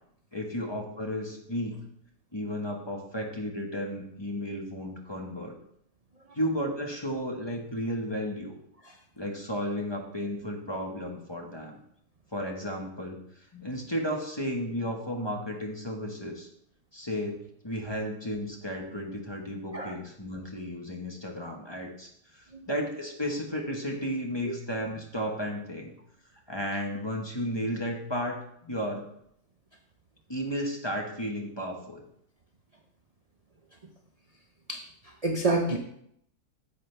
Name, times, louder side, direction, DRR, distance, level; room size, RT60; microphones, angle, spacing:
voice 1, 0.3-1.8 2.3-5.6 6.3-8.6 9.2-11.8 12.3-13.2 13.5-16.5 16.9-25.9 26.5-29.1 30.3-32.0, equal, 20° left, 0 dB, 1.1 m, -33 dB
voice 2, 35.2-35.8, right 2 dB, 40° right, 2 dB, 0.5 m, -27 dB
9.7 x 7.7 x 3.4 m, 0.71 s
omnidirectional pair, 1.7 m